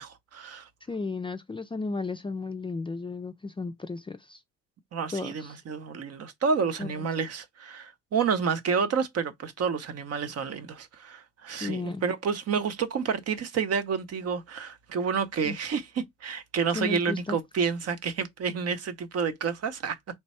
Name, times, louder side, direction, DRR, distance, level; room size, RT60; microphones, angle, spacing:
voice 1, 0.0-0.7 4.9-20.0, right 6 dB, 55° right, 0.7 m, -29 dB
voice 2, 0.9-4.4 5.1-5.6 6.8-7.1 11.6-12.0 15.4-15.6 16.7-17.4, left 3 dB, 15° left, 0.4 m, -34 dB
3.2 x 2.2 x 4.1 m
cardioid pair, 90°, 30 cm